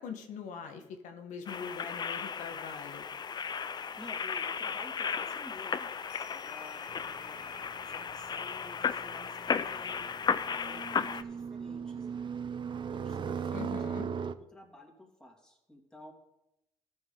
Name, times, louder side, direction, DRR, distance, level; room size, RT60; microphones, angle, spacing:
voice 1, 0.0-3.0 13.5-14.1, left 6 dB, 85° left, 5 dB, 1.3 m, -42 dB
sound 1, 1.5-11.2, left 6 dB, 35° left, 0.4 m, -35 dB
voice 2, 3.7-5.9 6.3-7.5 7.8-10.2 10.5-12.3 12.9-16.1, left 2 dB, 5° left, 0 dB, 2.4 m, -52 dB
sound 2, 6.1-10.8, left 9 dB, 60° left, 0.8 m, -55 dB
sound 3, 6.9-14.3, right 7 dB, 40° right, 0.5 m, -39 dB
14.0 x 6.3 x 3.8 m, 0.85 s
cardioid pair, 90°, 13 cm